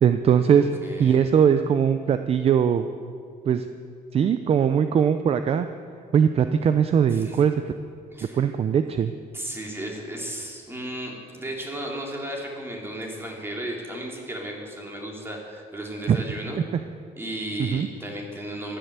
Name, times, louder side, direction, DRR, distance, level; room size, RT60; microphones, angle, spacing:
voice 1, 0.0-0.7 1.0-2.9 3.5-3.7 4.1-5.7 6.1-7.5 8.3-9.1 16.1-16.2 17.6-17.9, right 8 dB, 40° right, 10 dB, 0.6 m, -20 dB
voice 2, 0.5-1.3 7.1-7.4 8.1-8.4 9.3-16.6 17.2-18.8, right 1 dB, 15° right, -1 dB, 3.4 m, -34 dB
14.5 x 11.5 x 8.2 m, 2.3 s
cardioid pair, 120°, 15 cm